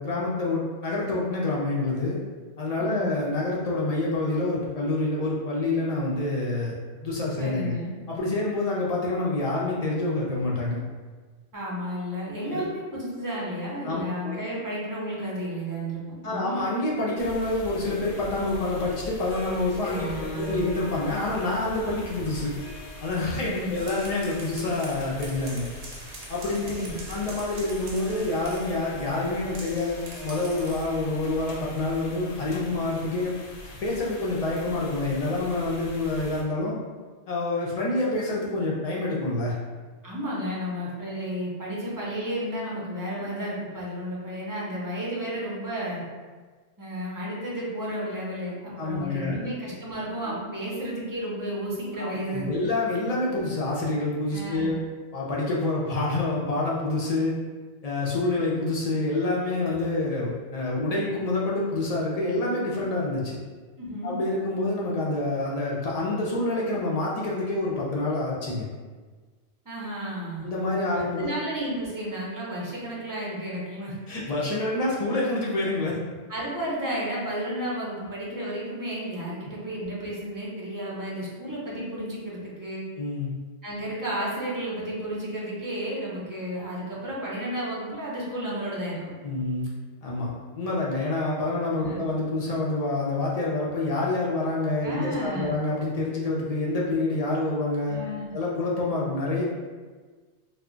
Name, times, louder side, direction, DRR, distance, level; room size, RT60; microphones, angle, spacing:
voice 1, 0.0-2.2 2.6-6.7 7.0-7.7 8.1-10.8 12.5-12.6 13.8-14.4 16.2-22.5 23.0-25.7 26.3-26.8 27.1-33.3 33.8-36.8 37.3-39.6 48.8-49.4 50.2-50.4 52.0-54.8 55.1-57.4 57.8-63.4 64.0-68.7 70.4-71.3 74.1-76.0 83.0-83.3 89.2-89.7 90.0-98.0 98.3-99.4, left 2 dB, 50° left, -5 dB, 0.5 m, -27 dB
voice 2, 2.8-3.1 7.4-7.9 11.5-16.6 19.8-20.7 23.3-23.7 26.6-27.0 40.0-46.0 46.8-52.6 54.3-54.8 63.8-64.2 69.7-70.5 70.9-74.0 76.3-82.8 83.6-89.1 91.8-92.1 94.8-95.5 97.9-98.3, equal, 30° right, -6 dB, 0.4 m, -32 dB
sound 1, 17.2-36.4, left 1 dB, 85° left, 0.9 m, -43 dB
Harp, 19.3-33.7, left 1 dB, 15° left, 0.9 m, -46 dB
sound 2, 23.7-28.8 29.5-30.9, right 3 dB, 70° right, 0.8 m, -44 dB
2.2 x 2.1 x 3.7 m, 1.4 s
omnidirectional pair, 1.1 m